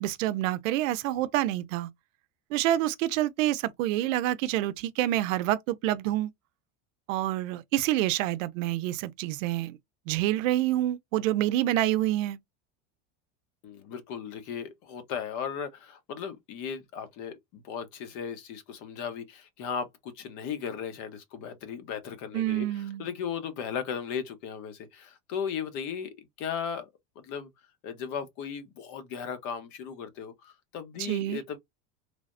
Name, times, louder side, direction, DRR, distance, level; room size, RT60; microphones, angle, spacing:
voice 1, 0.0-1.9 2.5-6.3 7.1-9.8 10.1-12.4 22.3-23.0 31.0-31.4, right 14 dB, 85° right, 0.6 m, -27 dB
voice 2, 13.6-26.9 27.2-27.5 27.8-31.6, left 7 dB, 50° left, 0.8 m, -36 dB
3.3 x 2.1 x 2.4 m
supercardioid pair, 145°, 38 cm